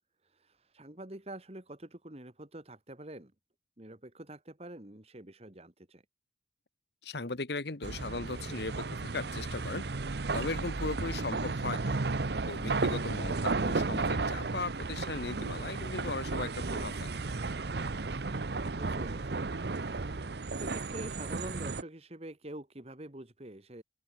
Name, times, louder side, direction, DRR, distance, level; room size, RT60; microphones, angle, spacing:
voice 1, 0.2-3.3 3.8-6.0 11.0-11.3 18.8-19.4 20.5-23.8, right 1 dB, 35° right, 1.8 m, -46 dB
voice 2, 7.0-12.0 12.4-17.1, left 3 dB, 65° left, 1.3 m, -38 dB
sound 1, 7.8-21.8, right 3 dB, 60° right, 0.8 m, -34 dB
open air
head